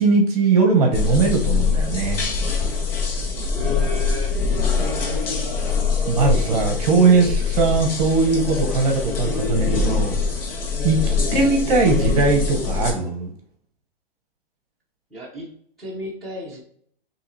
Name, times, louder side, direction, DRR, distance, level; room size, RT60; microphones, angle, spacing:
voice 1, 0.0-2.2 6.1-10.2 10.8-13.3, right 4 dB, 40° right, 2 dB, 0.9 m, -19 dB
sound 1, 0.9-12.9, left 4 dB, 70° left, 1.3 m, -23 dB
voice 2, 3.5-4.3 10.9-11.3 15.1-15.5 15.8-16.6, left 3 dB, ahead, -10 dB, 0.8 m, -33 dB
6.1 x 2.9 x 2.7 m, 0.64 s
hypercardioid pair, 165°, 29 cm